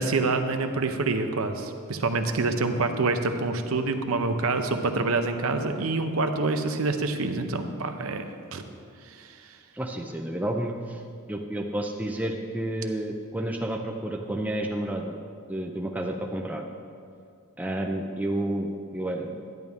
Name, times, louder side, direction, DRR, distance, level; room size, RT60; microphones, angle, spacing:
voice 1, 0.0-8.2 8.5-8.6 9.1-9.3, right 3 dB, 65° right, 6 dB, 0.7 m, -26 dB
voice 2, 9.7-11.0 11.3-15.2 15.5-16.6 17.6-18.7 18.9-19.4, right 1 dB, 5° right, 1 dB, 0.4 m, -30 dB
11.0 x 9.4 x 3.6 m, 2.3 s
head